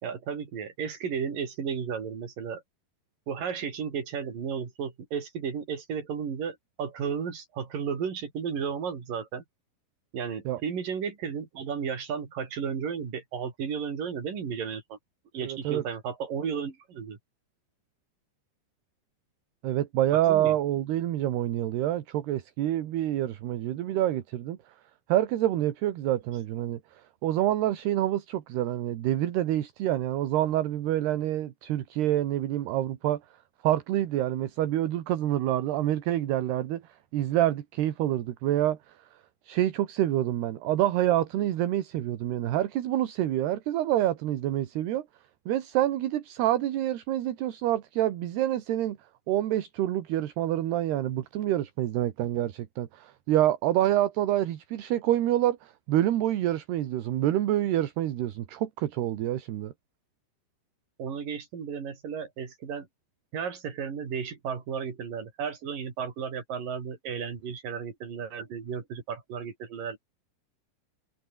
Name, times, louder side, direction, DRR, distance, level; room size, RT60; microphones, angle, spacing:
voice 1, 0.0-2.6 3.3-9.4 10.1-15.0 15.3-17.2 20.1-20.6 61.0-62.9 63.3-70.0, right 6 dB, 45° right, 5.2 m, -34 dB
voice 2, 15.4-15.8 19.6-24.6 25.1-33.2 33.6-36.8 37.1-38.8 39.4-45.1 45.5-49.0 49.3-59.7, right 13 dB, 65° right, 3.2 m, -27 dB
omnidirectional pair, 5.9 m